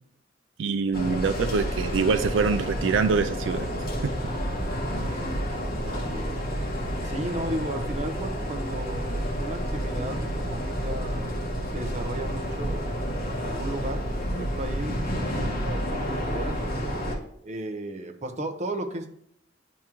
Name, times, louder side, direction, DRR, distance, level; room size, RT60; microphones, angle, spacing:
voice 1, 0.6-3.7 4.0-4.1, right 5 dB, 75° right, 9 dB, 0.4 m, -24 dB
sound 1, 0.9-17.1, equal, 50° left, 1.5 m, -30 dB
voice 2, 5.6-6.4 7.0-11.3 11.7-12.8 13.4-14.0 14.3-16.6 17.4-19.1, right 1 dB, 40° right, 4 dB, 0.7 m, -35 dB
10.0 x 3.6 x 3.0 m, 0.69 s
head